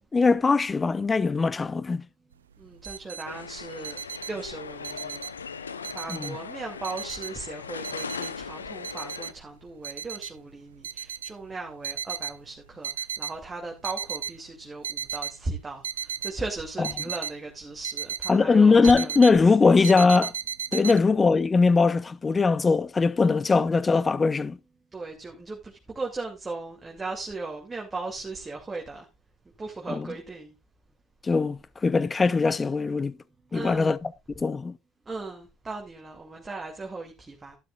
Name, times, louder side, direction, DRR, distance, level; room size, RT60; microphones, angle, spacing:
voice 1, 0.1-2.0 6.1-6.3 16.8-16.9 18.3-20.3 20.7-24.6 29.9-30.1 31.2-33.2 33.5-34.0 34.4-34.8, left 4 dB, 25° left, 0.9 m, -21 dB
sound 1, 2.3-2.4 2.6-3.3 3.6-5.5 5.8-6.6 6.8-8.5 8.8-9.4 9.8-10.4 10.8-12.4 12.8-13.4 13.7-14.4 14.7-15.3 15.8-18.3 18.6-19.4 19.8-21.0, right 8 dB, 80° right, 0.4 m, -34 dB
voice 2, 2.6-4.0 4.3-5.2 5.9-19.2 19.6-20.1 20.8-21.0 24.9-29.1 29.6-30.5 32.8-32.9 33.5-33.9 35.1-37.6, right 3 dB, 20° right, 2.5 m, -37 dB
sound 2, 3.2-9.3, left 6 dB, 85° left, 0.7 m, -39 dB
12.5 x 12.0 x 2.4 m
figure-of-eight pair, 65°, 0 cm